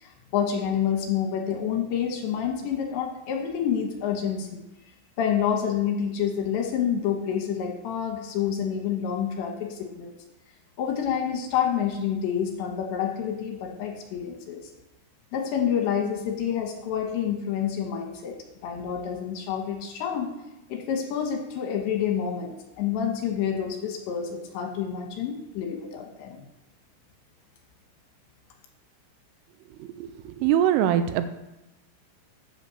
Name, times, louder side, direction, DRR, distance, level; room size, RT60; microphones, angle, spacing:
voice 1, 0.0-4.6 5.2-10.1 10.8-14.6 15.3-18.4 18.6-20.3 20.7-26.4, left 8 dB, 70° left, 2 dB, 3.1 m, -28 dB
voice 2, 29.8-31.3, right 10 dB, 85° right, 10 dB, 3.1 m, -23 dB
8.7 x 7.2 x 6.9 m, 0.94 s
omnidirectional pair, 5.9 m